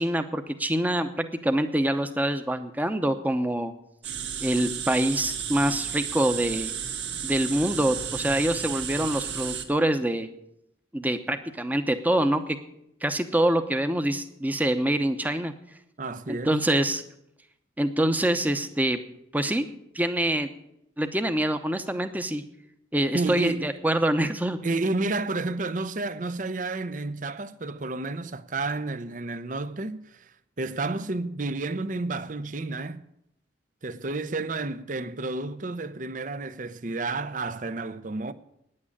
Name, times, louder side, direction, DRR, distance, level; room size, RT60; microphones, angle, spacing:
voice 1, 0.0-3.7 4.4-6.7 7.2-10.3 10.9-12.6 13.0-15.5 16.3-17.0 17.8-19.0 19.3-19.7 19.9-20.5 21.0-22.4 22.9-24.6, right 1 dB, 10° right, 0.8 m, -25 dB
sound 1, 4.0-9.6, right 8 dB, 65° right, 1.7 m, -33 dB
voice 2, 16.0-16.6 23.1-23.6 24.6-33.0 33.8-38.3, right 3 dB, 45° right, 0.7 m, -31 dB
9.8 x 8.8 x 9.8 m
head